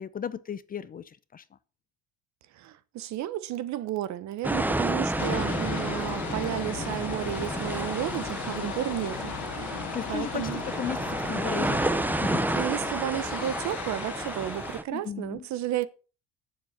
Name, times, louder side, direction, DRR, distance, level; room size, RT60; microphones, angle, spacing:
voice 1, 0.0-1.4 9.6-12.5 14.9-15.5, left 8 dB, 25° left, 0.7 m, -36 dB
voice 2, 2.5-10.6 12.5-15.9, right 13 dB, 55° right, 1.1 m, -33 dB
sound 1, 4.4-14.8, right 1 dB, 5° right, 0.8 m, -31 dB
sound 2, 5.2-14.8, left 11 dB, 60° left, 1.6 m, -37 dB
9.9 x 7.4 x 6.5 m
cardioid pair, 115°, 33 cm